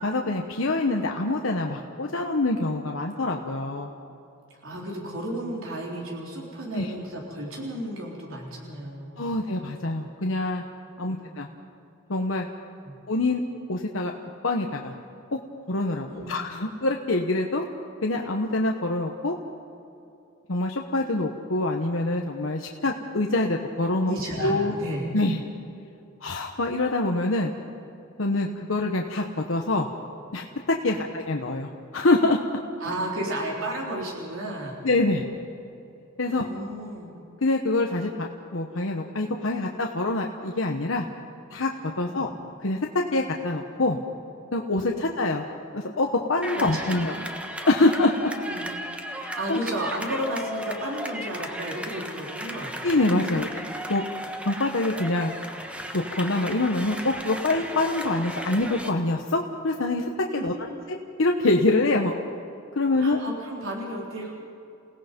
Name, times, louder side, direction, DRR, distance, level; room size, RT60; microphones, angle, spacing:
voice 1, 0.0-3.9 6.7-6.9 9.2-10.6 11.0-11.5 12.1-12.5 13.1-13.4 13.7-14.1 14.4-14.9 15.3-15.4 15.7-17.6 18.0-19.3 20.5-24.8 25.1-25.4 26.2-27.5 28.2-29.9 30.3-32.4 34.8-35.2 36.2-36.5 37.4-41.1 41.5-41.7 42.0-42.3 42.6-44.0 44.5-45.4 45.7-47.1 47.7-48.3 49.1-49.6 52.8-53.5 53.9-54.0 54.4-55.3 55.9-60.5 60.9-62.1 62.7-63.2, left 2 dB, 70° left, 1 dB, 1.2 m, -25 dB
voice 2, 4.6-9.3 10.9-11.2 12.8-13.0 16.1-16.3 24.0-25.1 30.8-31.0 32.8-34.8 36.2-37.1 42.0-42.3 44.8-45.0 46.5-46.8 47.1-47.2 48.4-48.7 49.1-52.7 53.1-53.5 60.3-60.8 63.0-64.5, right 1 dB, 80° right, -3 dB, 3.8 m, -33 dB
sound 1, 46.4-58.9, equal, 5° right, 1.4 m, -36 dB
29.0 x 17.5 x 5.4 m, 2.7 s
head